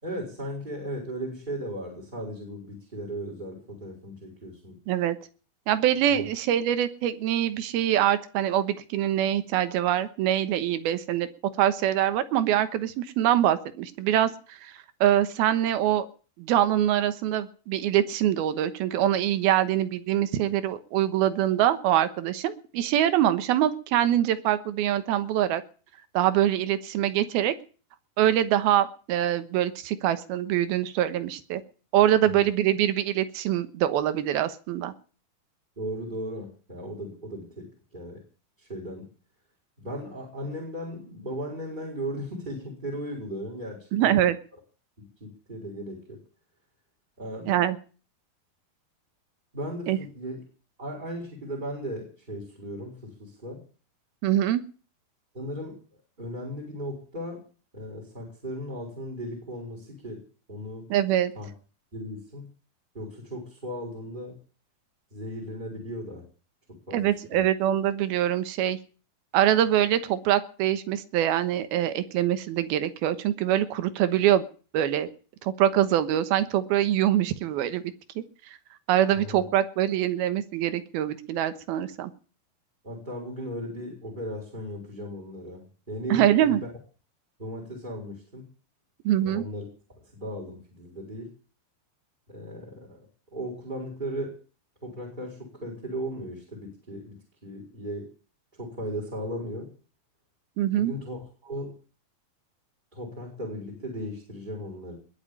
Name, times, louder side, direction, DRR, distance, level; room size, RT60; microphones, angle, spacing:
voice 1, 0.0-4.8 6.1-6.3 32.2-32.5 35.8-38.2 38.6-39.0 39.8-44.1 45.0-46.2 47.2-47.5 49.5-50.4 50.8-53.6 55.3-55.8 56.2-57.4 57.7-60.2 60.5-60.9 61.3-61.5 61.9-62.5 62.9-64.3 65.1-66.2 66.9-67.4 79.1-79.5 82.8-86.7 87.4-88.5 89.2-89.6 90.1-91.3 92.3-93.1 93.3-94.3 94.8-97.1 97.4-98.1 98.6-99.7 100.7-101.7 102.9-104.9, equal, 10° right, 0 dB, 5.0 m, -36 dB
voice 2, 4.9-5.2 5.7-11.3 11.6-14.7 15.0-16.1 16.4-25.6 26.1-27.6 28.2-31.6 31.9-34.9 43.9-44.4 47.5-47.8 49.9-50.0 54.2-54.6 60.9-61.3 66.9-68.8 69.3-74.4 74.7-75.1 75.4-78.2 78.9-82.1 86.1-86.6 89.1-89.4 100.6-100.9, right 11 dB, 85° right, 12 dB, 3.1 m, -24 dB
21.0 x 7.4 x 8.7 m, 0.41 s
omnidirectional pair, 4.3 m